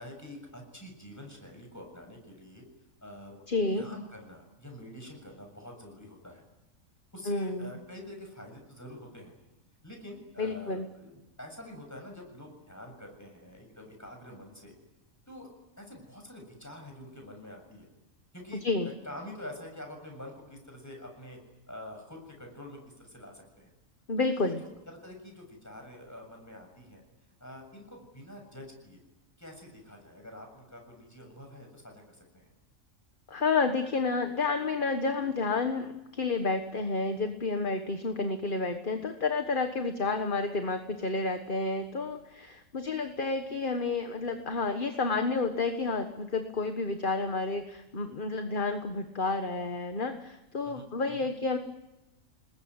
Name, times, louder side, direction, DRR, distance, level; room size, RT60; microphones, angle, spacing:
voice 1, 0.0-2.6 3.0-3.4 3.7-6.4 7.1-9.3 9.8-14.7 15.3-15.5 15.7-17.9 18.3-21.4 21.7-23.7 24.2-27.0 27.4-29.0 29.4-32.5 50.6-51.3, left 1 dB, 10° left, 2 dB, 7.2 m, -46 dB
voice 2, 3.5-3.9 7.3-7.7 10.4-10.8 18.6-18.9 24.1-24.6 33.3-51.6, left 3 dB, 40° left, 6 dB, 1.5 m, -30 dB
28.5 x 20.5 x 9.8 m, 0.99 s
omnidirectional pair, 1.4 m